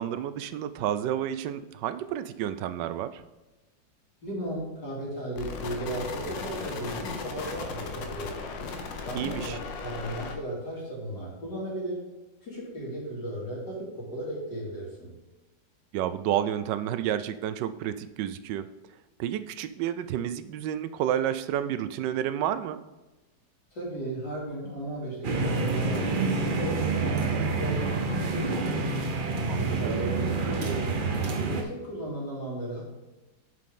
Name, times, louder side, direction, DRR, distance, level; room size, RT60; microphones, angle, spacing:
voice 1, 0.0-3.2 9.1-9.6 15.9-18.7 19.2-22.8 29.5-30.1, right 10 dB, 75° right, 12 dB, 1.2 m, -30 dB
voice 2, 4.2-8.5 9.1-9.6 9.8-12.0 12.4-15.1 23.7-27.9 28.3-28.9 29.6-32.8, right 1 dB, 65° left, -5 dB, 3.2 m, -35 dB
sound 1, 5.4-10.4, left 4 dB, 80° left, 1.6 m, -37 dB
sound 2, 25.2-31.6, right 4 dB, 55° right, 0.5 m, -28 dB
7.6 x 6.6 x 3.8 m, 1.1 s
omnidirectional pair, 2.0 m